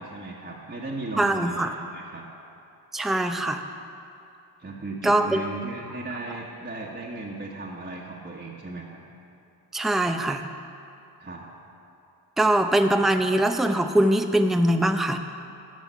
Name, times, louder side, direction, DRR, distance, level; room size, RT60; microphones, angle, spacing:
voice 1, 0.0-2.2 4.6-9.0 11.2-11.5, right 2 dB, 25° right, -4 dB, 1.4 m, -36 dB
voice 2, 1.2-1.7 2.9-3.6 5.0-5.4 9.7-10.5 12.4-15.2, right 1 dB, ahead, 6 dB, 0.6 m, -22 dB
13.0 x 5.7 x 5.6 m, 2.6 s
supercardioid pair, 40°, 43 cm